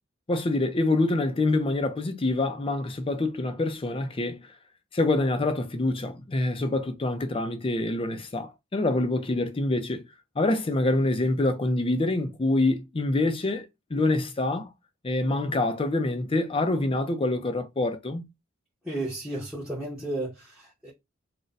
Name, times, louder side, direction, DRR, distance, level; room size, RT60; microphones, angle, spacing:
voice 1, 0.3-4.4 4.9-10.0 10.4-14.7 15.0-18.2, left 2 dB, 25° left, 0.5 m, -26 dB
voice 2, 18.9-20.9, right 1 dB, 5° right, 0.8 m, -33 dB
2.5 x 2.2 x 3.9 m
head